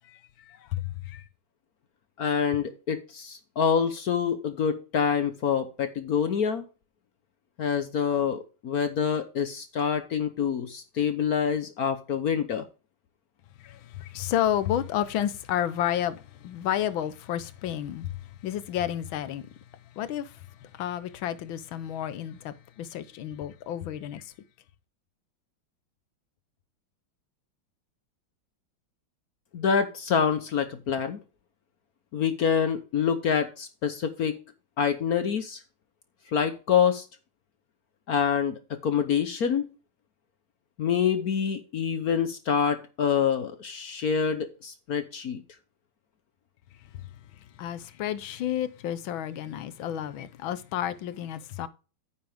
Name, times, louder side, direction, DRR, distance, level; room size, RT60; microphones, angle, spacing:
voice 1, 0.5-1.2 13.6-18.1 18.4-19.4 20.0-20.3 20.8-24.3 47.6-51.7, left 11 dB, 75° left, 1.5 m, -31 dB
voice 2, 2.2-6.6 7.6-12.6 29.5-31.2 32.1-34.4 34.8-35.6 36.3-37.1 38.1-39.7 40.8-45.4, left 7 dB, 55° left, 1.1 m, -26 dB
9.6 x 7.7 x 3.4 m
omnidirectional pair, 2.3 m